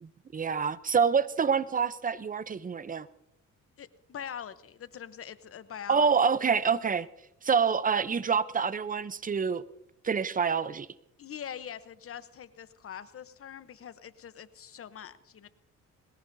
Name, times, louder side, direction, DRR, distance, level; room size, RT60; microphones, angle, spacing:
voice 1, 0.0-3.1 5.9-7.1 7.4-9.6 10.0-10.9, right 6 dB, 30° right, 16 dB, 0.6 m, -27 dB
voice 2, 3.8-6.1 11.2-15.5, left 8 dB, 50° left, 14 dB, 0.9 m, -43 dB
21.0 x 18.5 x 2.7 m, 0.77 s
cardioid pair, 90°, 30 cm